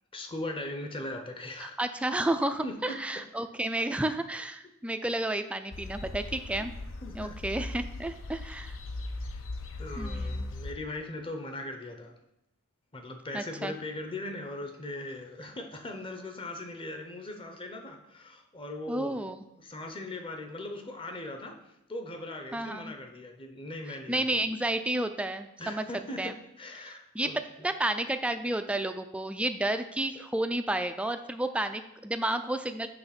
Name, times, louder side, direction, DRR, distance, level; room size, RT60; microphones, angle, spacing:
voice 1, 0.1-1.8 2.6-3.0 3.7-3.8 4.6-4.7 6.6-6.7 7.0-7.4 9.2-9.5 9.8-12.1 12.9-19.3 19.6-24.4 25.6-26.3 26.6-27.4 30.1-30.2, left 1 dB, 25° left, 4 dB, 0.8 m, -39 dB
voice 2, 1.6-6.7 7.1-8.8 10.0-10.5 13.3-13.7 18.9-19.4 22.5-22.9 24.1-25.8 26.2-26.3 27.1-27.3 27.6-32.9, right 1 dB, 5° right, 9 dB, 0.3 m, -31 dB
sound 1, 5.7-10.7, left 2 dB, 65° left, 0.6 m, -38 dB
7.8 x 3.5 x 5.9 m, 0.87 s
head